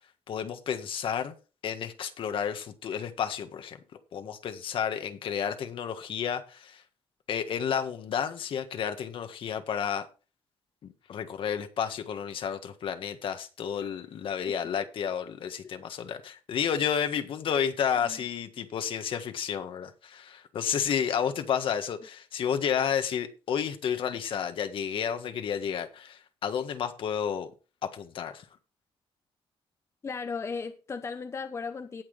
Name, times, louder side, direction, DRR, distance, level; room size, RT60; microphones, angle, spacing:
voice 1, 0.3-1.3 1.6-3.8 4.1-6.8 7.3-10.1 11.1-27.5 27.8-28.4, left 8 dB, 65° left, 1.5 m, -31 dB
voice 2, 30.0-32.0, left 5 dB, 30° left, 0.8 m, -36 dB
18.0 x 6.1 x 3.3 m
cardioid pair, 150°, 10 cm